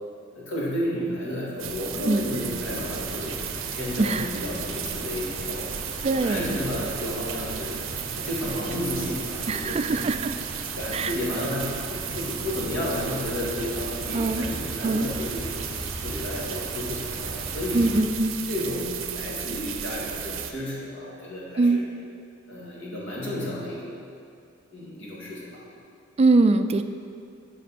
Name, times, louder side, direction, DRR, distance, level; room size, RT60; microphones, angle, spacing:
voice 1, 0.3-3.4 3.7-5.7 6.2-7.8 8.1-10.0 10.8-15.5 16.0-17.8 18.5-21.8 22.5-23.9 24.7-25.6, left 1 dB, 75° left, -5 dB, 2.2 m, -32 dB
sound 1, 1.6-20.5, right 9 dB, 75° right, 0.6 m, -35 dB
sound 2, 2.5-18.0, equal, 5° left, 1.3 m, -39 dB
voice 2, 4.0-4.3 6.0-6.6 9.5-10.3 10.9-11.1 14.1-14.5 14.8-15.1 17.7-18.3 21.6-21.8 26.2-26.8, right 3 dB, 30° right, 9 dB, 0.3 m, -22 dB
10.5 x 5.3 x 4.2 m, 2.3 s
head